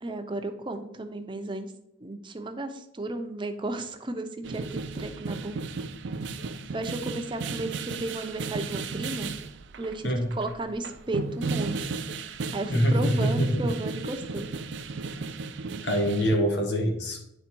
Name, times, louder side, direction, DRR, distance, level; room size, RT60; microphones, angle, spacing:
voice 1, 0.0-1.7 2.0-5.6 6.7-9.4 9.8-10.1 10.3-11.9 12.5-14.5, right 2 dB, 25° right, 6 dB, 0.6 m, -34 dB
sound 1, 4.4-16.4, right 4 dB, 70° right, 0.5 m, -35 dB
voice 2, 12.7-13.6 15.8-17.3, equal, 65° left, 3 dB, 1.2 m, -24 dB
9.4 x 3.5 x 4.5 m, 0.83 s
head